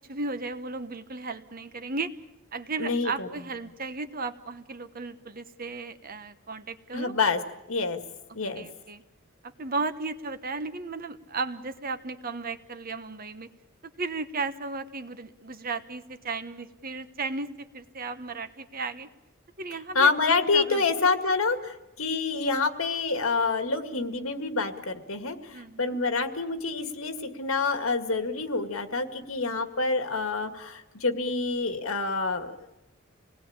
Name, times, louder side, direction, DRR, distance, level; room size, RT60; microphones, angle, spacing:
voice 1, 0.1-2.1 2.5-7.1 8.6-9.0 9.4-13.5 14.0-19.1 19.6-20.1 20.5-20.8 25.5-26.0, right 3 dB, 45° right, 10 dB, 1.2 m, -35 dB
voice 2, 2.8-3.3 6.9-7.4 7.7-8.0 8.3-8.7 19.9-32.7, left 4 dB, 80° left, 8 dB, 2.1 m, -27 dB
27.0 x 19.0 x 8.8 m, 0.93 s
head